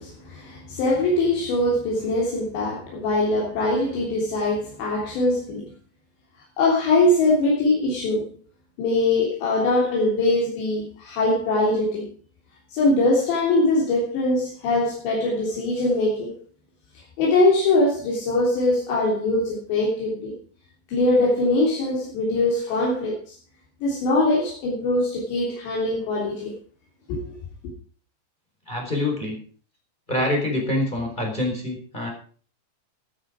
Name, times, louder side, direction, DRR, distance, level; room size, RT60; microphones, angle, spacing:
voice 1, 0.0-5.7 6.6-8.3 8.8-12.1 12.7-16.4 17.2-20.3 20.9-23.4 23.8-26.5 27.1-27.3, left 2 dB, 80° left, 5.6 m, -22 dB
voice 2, 28.7-29.4 30.1-32.1, left 1 dB, 10° left, 4.0 m, -25 dB
16.5 x 9.2 x 5.0 m
omnidirectional pair, 5.0 m